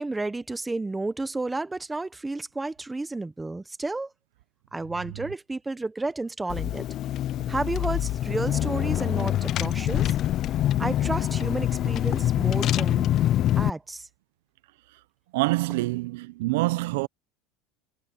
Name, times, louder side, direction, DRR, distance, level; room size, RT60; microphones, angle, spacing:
voice 1, 0.0-4.1 4.7-6.9 7.5-10.2 10.8-13.1 13.6-14.1, right 2 dB, 10° right, 0.8 m, -31 dB
Car / Engine, 6.5-13.7, left 12 dB, 40° left, 0.4 m, -25 dB
voice 2, 15.3-17.1, right 21 dB, 85° right, 0.5 m, -26 dB
supercardioid pair, 150°, 0 cm